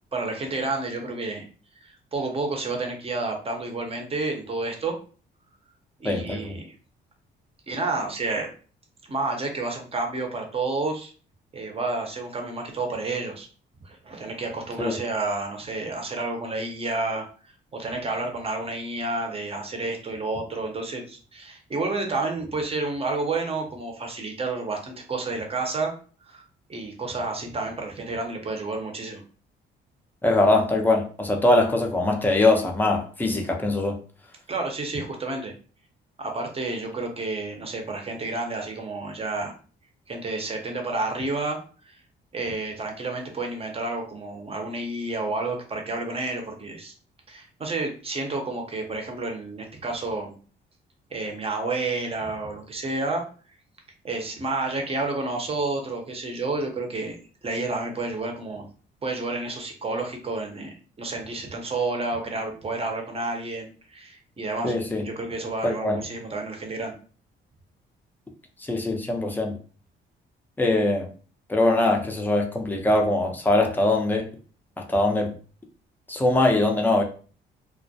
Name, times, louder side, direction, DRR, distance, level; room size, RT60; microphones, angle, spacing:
voice 1, 0.1-1.5 1.8-5.0 6.0-6.7 7.7-8.5 9.1-11.1 11.5-13.5 13.8-17.2 17.7-25.9 26.3-26.4 26.7-29.2 34.5-35.5 36.2-39.5 40.1-41.6 41.9-42.0 42.3-46.9 47.3-50.4 51.1-53.2 54.0-57.2 57.4-58.7 59.0-64.7 65.0-66.9, right 3 dB, 30° right, 3 dB, 0.7 m, -30 dB
voice 2, 6.0-6.5 14.8-15.0 30.2-34.0 64.6-65.0 65.6-66.0 68.6-69.5 70.6-71.1 71.5-74.3 74.8-75.3 76.1-77.0, left 2 dB, 10° left, 1 dB, 0.5 m, -22 dB
2.2 x 2.1 x 2.7 m, 0.39 s
cardioid pair, 90°, 20 cm